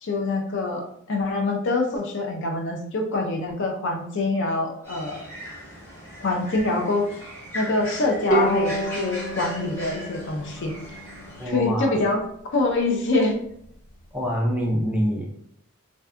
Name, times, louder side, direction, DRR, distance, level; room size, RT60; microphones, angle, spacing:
voice 1, 0.0-5.2 6.2-7.2 7.5-10.7 11.4-12.2 12.5-13.4, left 2 dB, 55° left, 2 dB, 0.5 m, -25 dB
sound 1, 4.8-11.5, equal, 10° left, 0.9 m, -39 dB
Bowed string instrument, 8.3-11.6, right 1 dB, 40° left, 0.8 m, -28 dB
voice 2, 11.4-12.0 14.1-15.3, equal, 5° right, -1 dB, 0.3 m, -25 dB
2.6 x 2.2 x 2.4 m, 0.69 s
head